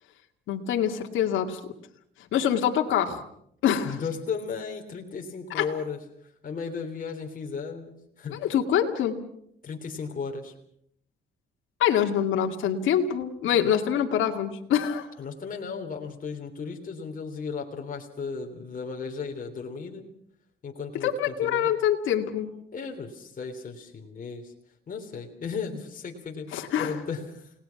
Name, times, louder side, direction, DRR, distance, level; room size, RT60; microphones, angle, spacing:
voice 1, 0.5-1.6 2.3-3.2 3.6-4.0 5.5-5.6 8.4-9.2 11.8-15.1 21.0-22.5 26.5-26.9, left 9 dB, 80° left, 3 dB, 2.2 m, -25 dB
voice 2, 3.8-8.4 9.6-10.5 15.2-20.1 20.6-21.7 22.7-24.5 24.9-27.6, left 5 dB, 45° left, 2 dB, 3.3 m, -35 dB
30.0 x 19.0 x 5.9 m, 0.71 s
cardioid pair, 90°, 20 cm